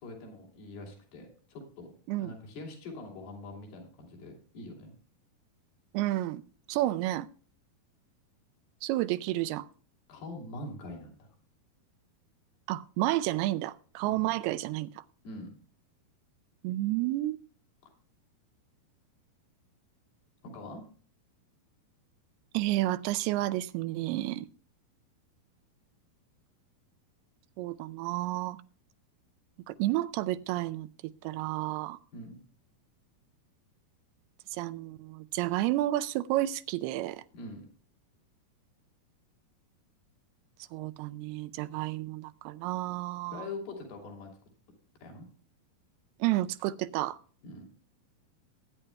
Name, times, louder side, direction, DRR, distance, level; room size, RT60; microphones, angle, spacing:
voice 1, 0.0-1.9 2.2-4.9 10.1-11.3 14.0-14.3 15.2-15.5 20.4-20.8 32.1-32.4 37.3-37.6 43.3-44.3 45.0-45.3 47.4-47.6, left 2 dB, 75° left, 1 dB, 4.8 m, -43 dB
voice 2, 5.9-6.4 6.7-7.3 8.8-9.7 12.7-15.0 16.6-17.4 22.5-24.5 27.6-28.6 29.7-32.0 34.5-37.2 40.7-43.5 46.2-47.2, right 16 dB, 90° right, 13 dB, 2.6 m, -31 dB
20.5 x 9.9 x 2.2 m, 0.42 s
omnidirectional pair, 4.5 m